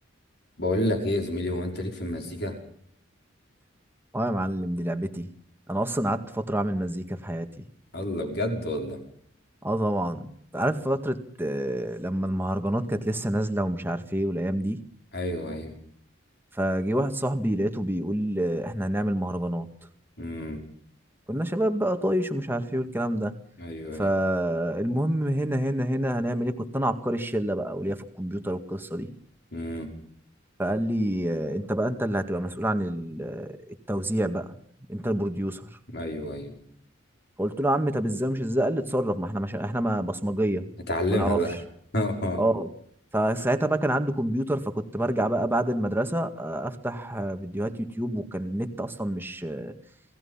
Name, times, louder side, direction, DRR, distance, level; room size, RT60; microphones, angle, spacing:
voice 1, 0.6-2.6 7.9-9.0 15.1-15.8 20.2-20.6 23.6-24.1 29.5-29.9 35.9-36.5 40.9-41.6 41.9-42.4, left 1 dB, 55° left, 3 dB, 5.4 m, -29 dB
voice 2, 4.1-5.4 5.7-7.5 9.6-14.8 16.6-19.7 21.3-23.3 24.0-29.1 30.6-33.6 33.9-34.5 34.9-35.7 37.4-40.7 41.1-41.4 42.4-42.7 43.1-49.7, right 1 dB, 10° right, 7 dB, 1.9 m, -27 dB
28.0 x 18.5 x 5.7 m, 0.64 s
head